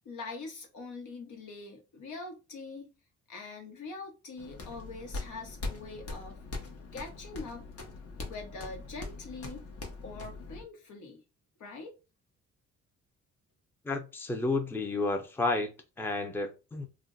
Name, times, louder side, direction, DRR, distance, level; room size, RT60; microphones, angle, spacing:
voice 1, 0.0-2.9 3.3-6.4 6.9-7.7 8.2-9.6 10.0-11.2 11.6-11.9, left 3 dB, 75° left, 1.1 m, -43 dB
sound 1, 4.4-10.6, left 3 dB, 55° left, 1.0 m, -42 dB
voice 2, 13.8-16.9, left 3 dB, 5° left, 0.5 m, -31 dB
2.5 x 2.1 x 3.8 m
cardioid pair, 90°, 30 cm